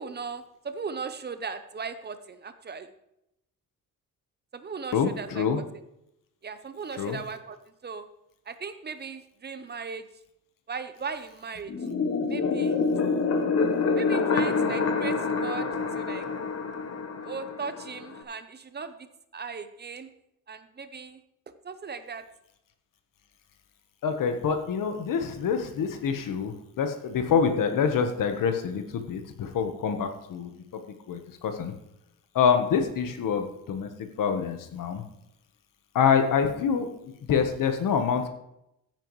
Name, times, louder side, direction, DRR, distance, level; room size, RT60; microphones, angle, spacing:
voice 1, 0.0-2.9 4.5-5.5 6.4-7.6 7.8-8.0 8.5-10.1 10.7-11.7 12.3-12.8 13.9-16.3 17.2-19.1 19.3-20.1 20.5-21.2 21.6-22.2, right 5 dB, 30° right, 10 dB, 0.7 m, -37 dB
voice 2, 4.9-5.6 7.0-7.2 24.0-30.5 31.1-31.7 32.3-35.0 35.9-38.3, left 6 dB, 70° left, 6 dB, 1.2 m, -26 dB
sound 1, 11.7-18.2, left 4 dB, 45° left, 1.1 m, -27 dB
15.0 x 9.1 x 3.1 m, 0.82 s
wide cardioid pair, 155°, 34 cm